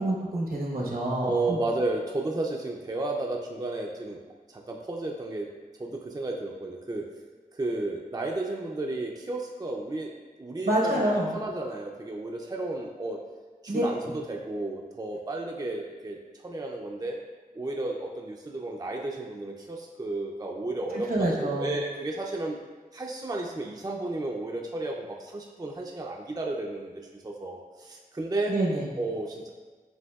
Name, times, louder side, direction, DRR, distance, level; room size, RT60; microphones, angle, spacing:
voice 1, 0.0-1.6 10.7-11.4 13.7-13.8 21.1-21.7 28.5-28.9, right 1 dB, 75° right, -3 dB, 1.0 m, -27 dB
voice 2, 1.2-4.2 4.5-5.5 5.8-7.1 7.5-10.1 10.4-13.2 13.6-16.2 16.4-17.2 17.6-22.6 22.9-28.5 29.0-29.5, right 2 dB, 25° right, 0 dB, 0.4 m, -33 dB
7.8 x 2.7 x 2.3 m, 1.3 s
wide cardioid pair, 55°, 16 cm